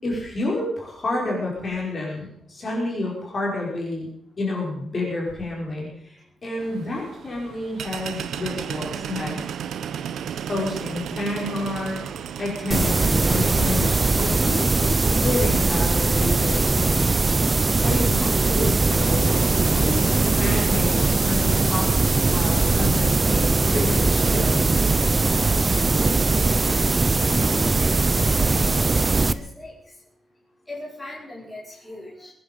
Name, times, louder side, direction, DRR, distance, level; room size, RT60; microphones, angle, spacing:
voice 1, 0.0-4.1 4.4-9.5 10.5-12.0 12.4-15.0 15.2-17.1 17.8-19.3 19.6-24.8, left 2 dB, 30° left, -3 dB, 5.4 m, -29 dB
sound 1, 6.6-18.7, right 8 dB, 85° right, 0.9 m, -35 dB
sound 2, 12.7-29.3, right 3 dB, 20° right, 0.6 m, -20 dB
voice 2, 26.5-27.9 28.3-29.7 30.7-32.3, left 1 dB, 10° left, -6 dB, 5.1 m, -39 dB
23.0 x 10.5 x 5.4 m, 0.68 s
wide cardioid pair, 165°, 0 cm